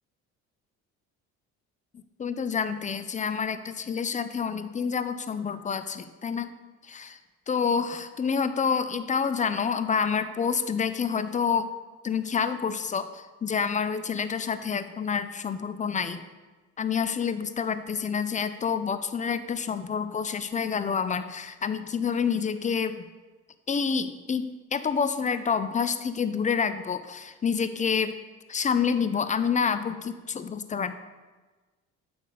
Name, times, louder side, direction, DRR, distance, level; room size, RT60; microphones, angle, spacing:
voice 1, 2.2-6.5 6.9-7.2 7.5-11.7 12.0-16.3 16.8-23.0 23.7-28.2 28.5-31.0, left 6 dB, 25° left, 11 dB, 0.4 m, -28 dB
8.4 x 4.0 x 4.9 m, 1.3 s
supercardioid pair, 85°, 32 cm